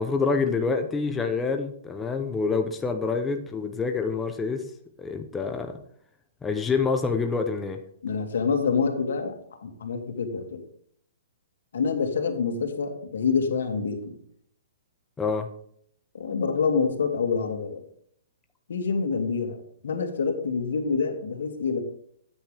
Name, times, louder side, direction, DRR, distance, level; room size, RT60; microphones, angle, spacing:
voice 1, 0.0-4.7 5.0-5.8 6.4-7.8 15.2-15.5, left 4 dB, 10° left, 5 dB, 0.6 m, -27 dB
voice 2, 8.0-10.6 11.7-14.2 16.1-17.8 18.7-19.6 19.8-21.8, left 5 dB, 80° left, 5 dB, 2.4 m, -27 dB
14.5 x 8.8 x 3.4 m, 0.65 s
hypercardioid pair, 170°, 0 cm